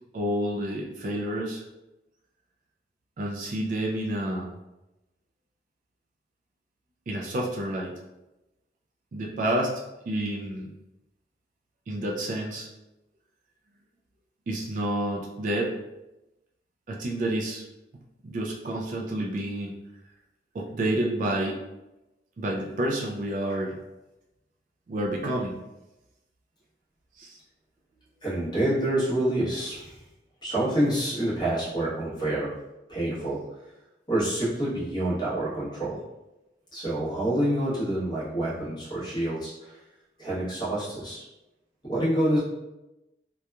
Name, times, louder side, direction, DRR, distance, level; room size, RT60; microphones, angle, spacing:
voice 1, 0.1-1.6 3.2-4.5 7.1-8.0 9.1-10.7 11.9-12.7 14.5-15.8 16.9-17.6 18.2-19.7 20.5-21.6 22.4-23.8 24.9-25.6 27.2-27.4, right 1 dB, 45° right, -1 dB, 0.3 m, -29 dB
voice 2, 28.2-30.0 30.4-32.5 32.9-33.4 34.1-36.0 36.7-39.8 40.2-41.2 41.9-42.4, right 1 dB, 25° left, -9 dB, 1.0 m, -27 dB
2.8 x 2.3 x 2.2 m, 0.99 s
head